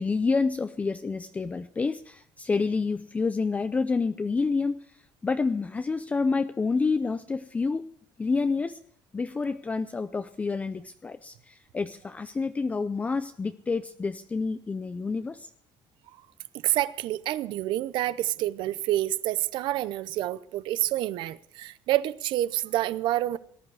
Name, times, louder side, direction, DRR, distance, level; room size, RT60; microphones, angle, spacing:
voice 1, 0.0-4.9 5.2-7.9 8.2-8.8 9.1-15.5, left 4 dB, 15° left, 0.5 m, -28 dB
voice 2, 16.6-23.4, right 14 dB, 75° right, 0.6 m, -28 dB
18.5 x 11.0 x 4.7 m
cardioid pair, 150°, 8 cm